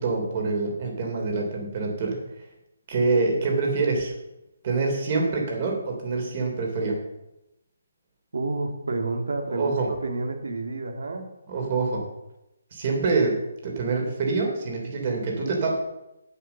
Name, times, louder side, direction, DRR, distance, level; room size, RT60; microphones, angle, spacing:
voice 1, 0.0-2.2 2.9-4.1 4.6-7.0 9.5-9.9 11.5-12.0 12.7-15.8, right 3 dB, 35° right, 1 dB, 3.2 m, -26 dB
voice 2, 8.3-9.7 10.0-11.3, right 2 dB, 75° right, 5 dB, 2.1 m, -29 dB
8.3 x 7.4 x 7.1 m, 0.92 s
hypercardioid pair, 160°, 0 cm